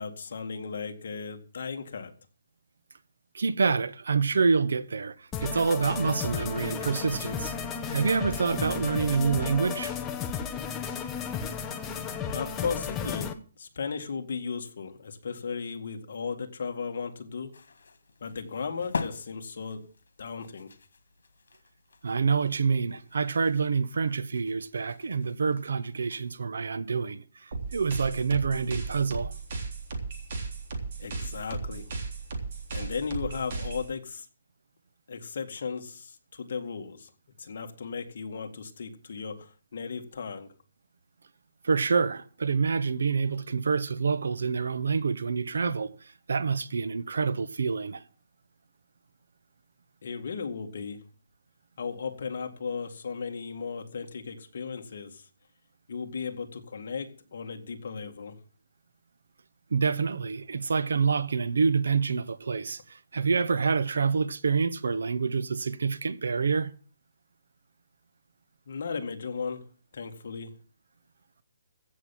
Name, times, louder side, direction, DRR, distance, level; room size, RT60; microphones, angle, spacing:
voice 1, 0.0-2.1 12.3-17.5 18.2-19.9 20.2-20.7 31.0-31.9 32.7-34.3 35.1-37.1 37.4-40.5 50.0-51.0 51.8-55.2 55.9-58.4 68.7-69.6 69.9-70.5, left 5 dB, 50° left, 2.0 m, -36 dB
voice 2, 3.3-7.5 7.9-10.0 22.0-29.3 41.6-48.0 59.7-66.7, right 5 dB, 75° right, 1.0 m, -27 dB
sound 1, 5.3-13.3, left 6 dB, 10° left, 0.7 m, -34 dB
sound 2, 17.5-26.4, left 4 dB, 80° left, 1.9 m, -43 dB
sound 3, 27.5-33.9, right 4 dB, 40° right, 3.5 m, -36 dB
15.5 x 6.9 x 7.4 m
hypercardioid pair, 175°, 0 cm